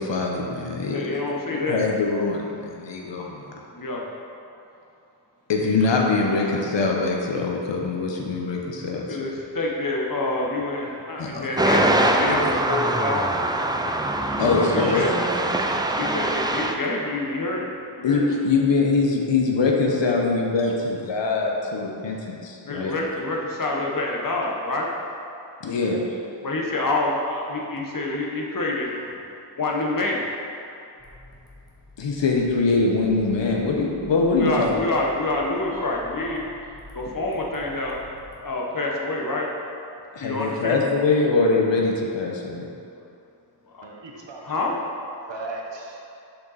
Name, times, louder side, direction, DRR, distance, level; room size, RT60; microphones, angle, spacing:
voice 1, 0.0-1.2 1.5-3.6 5.5-9.2 11.2-11.5 12.3-12.4 14.4-15.0 18.0-22.9 25.6-26.1 32.0-34.7 40.1-42.7, left 3 dB, 85° left, -1 dB, 0.9 m, -23 dB
voice 2, 0.9-1.8 3.7-4.1 5.7-5.9 6.4-6.6 9.1-13.3 14.3-15.1 15.9-18.3 22.7-24.9 26.4-29.2 29.5-30.3 34.3-36.4 36.9-38.1 38.4-39.5 40.2-40.9 43.7-43.9 44.4-44.8, left 2 dB, 50° left, -1 dB, 1.1 m, -27 dB
sound 1, 11.6-16.7, right 2 dB, 10° right, 0.3 m, -23 dB
voice 3, 14.8-16.1 43.8-44.8 45.3-46.0, right 3 dB, 80° right, 0 dB, 1.0 m, -35 dB
sound 2, 31.0-38.5, left 1 dB, 10° left, 1.2 m, -48 dB
6.5 x 5.7 x 4.1 m, 2.6 s
wide cardioid pair, 95°, 43 cm